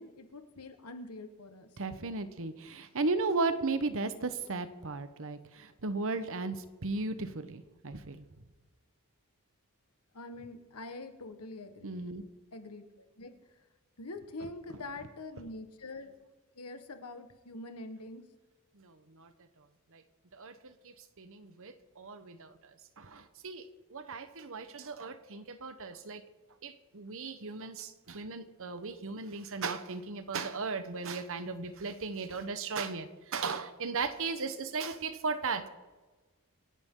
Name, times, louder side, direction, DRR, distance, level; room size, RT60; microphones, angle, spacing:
voice 1, 0.0-1.7 10.1-12.2 12.5-13.3 14.0-16.1 16.5-18.2, left 2 dB, 80° left, 7 dB, 1.5 m, -45 dB
voice 2, 1.8-8.2 11.8-12.2 18.8-19.3 19.9-20.0 20.3-22.5 23.0-26.2 26.6-35.7, right 3 dB, 65° right, 11 dB, 1.1 m, -36 dB
26.5 x 10.5 x 3.9 m, 1.3 s
head